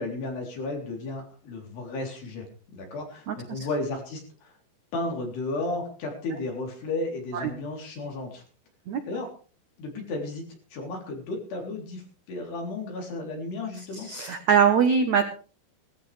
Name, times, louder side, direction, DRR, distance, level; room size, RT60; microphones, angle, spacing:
voice 1, 0.0-2.5 2.7-4.5 4.9-8.4 9.0-9.3 9.8-10.5 10.7-14.1, left 2 dB, 65° left, 1 dB, 5.7 m, -33 dB
voice 2, 3.3-3.7 7.3-7.5 8.9-9.0 13.9-15.2, right 7 dB, 75° right, 6 dB, 1.6 m, -22 dB
18.0 x 15.0 x 3.4 m, 0.39 s
omnidirectional pair, 5.2 m